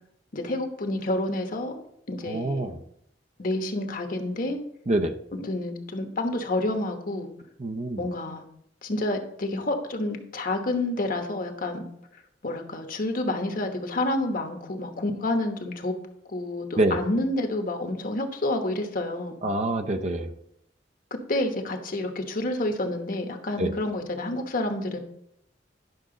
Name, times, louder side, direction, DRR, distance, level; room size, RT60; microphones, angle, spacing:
voice 1, 0.3-1.8 2.1-2.7 3.4-4.6 5.3-7.3 8.0-8.4 8.8-11.8 12.4-16.0 16.3-19.4 21.1-25.0, left 1 dB, 50° left, 5 dB, 1.1 m, -29 dB
voice 2, 2.3-2.7 4.9-5.1 7.6-8.0 16.8-17.0 19.4-20.3 23.6-23.7, right 1 dB, 40° right, 6 dB, 0.6 m, -25 dB
10.5 x 6.0 x 3.8 m, 0.74 s
head